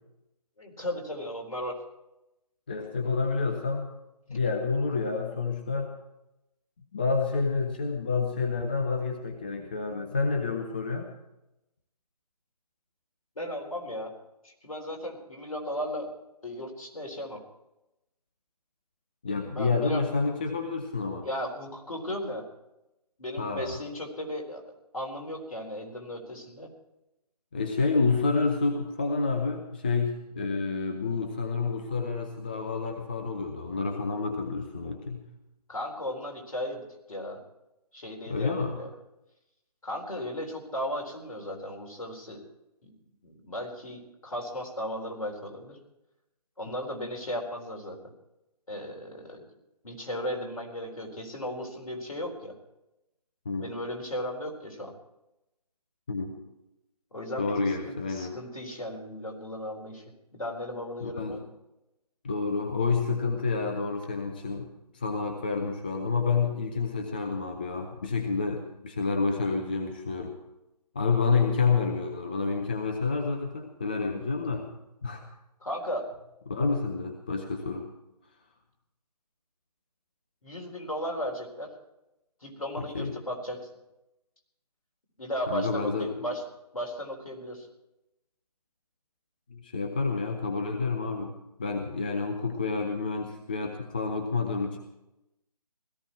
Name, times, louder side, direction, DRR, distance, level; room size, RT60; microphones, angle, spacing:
voice 1, 0.6-1.8 13.4-14.1 14.4-16.1 16.4-17.4 19.5-20.0 21.2-22.4 23.2-26.7 35.7-36.8 37.1-37.4 37.9-38.9 39.8-42.4 42.8-42.9 43.2-45.8 46.6-48.1 48.7-49.4 49.8-52.5 53.6-54.9 57.1-57.5 57.9-60.0 60.3-61.4 75.6-76.1 80.4-81.7 82.4-83.7 85.2-86.4 86.7-87.7, equal, 55° left, 0 dB, 4.2 m, -36 dB
voice 2, 2.7-3.9 4.3-5.9 6.9-11.1 19.2-21.3 23.4-23.8 27.5-35.2 38.3-38.8 53.5-53.6 56.1-56.3 57.4-58.3 61.0-61.4 62.2-64.7 64.9-70.4 70.9-74.7 75.0-75.2 76.5-77.9 82.8-83.1 85.5-86.3 89.5-94.8, left 4 dB, 15° left, 3 dB, 0.5 m, -29 dB
17.0 x 14.5 x 4.6 m, 0.92 s
figure-of-eight pair, 150°, 21 cm